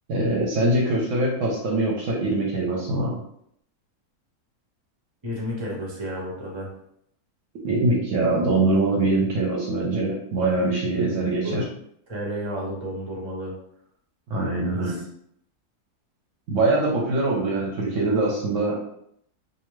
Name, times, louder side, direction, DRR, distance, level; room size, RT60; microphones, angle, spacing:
voice 1, 0.1-3.1 7.6-11.6 14.3-14.9 16.5-18.8, right 2 dB, 65° right, -2 dB, 0.8 m, -23 dB
voice 2, 5.2-6.7 11.0-11.2 11.4-11.6 12.1-13.5 14.6-15.0, equal, 40° right, -3 dB, 0.4 m, -32 dB
2.7 x 2.1 x 3.0 m, 0.71 s
omnidirectional pair, 1.7 m